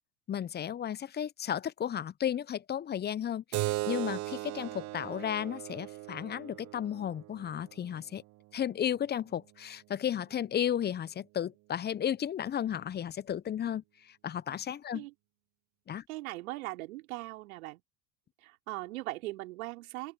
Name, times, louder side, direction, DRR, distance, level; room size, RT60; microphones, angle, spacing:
voice 1, 0.3-8.2 8.5-15.1 15.9-16.0, left 9 dB, 20° left, 1.0 m, -34 dB
Keyboard (musical), 3.5-8.6, right 22 dB, 35° right, 0.9 m, -38 dB
voice 2, 16.1-17.8 18.4-20.1, right 19 dB, 60° right, 4.1 m, -40 dB
open air
hypercardioid pair, 90°, 47 cm